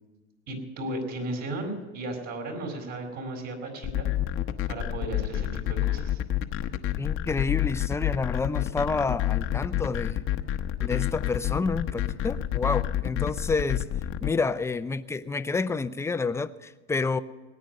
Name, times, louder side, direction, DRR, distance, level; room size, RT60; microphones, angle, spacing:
voice 1, 0.5-4.1 4.7-6.2, right 2 dB, 55° right, 4.6 m, -35 dB
sound 1, 3.8-14.3, left 12 dB, 40° left, 0.9 m, -28 dB
voice 2, 7.0-10.2 10.8-13.8 14.2-17.2, left 4 dB, 10° left, 0.5 m, -29 dB
18.5 x 9.3 x 6.5 m
supercardioid pair, 115°, 32 cm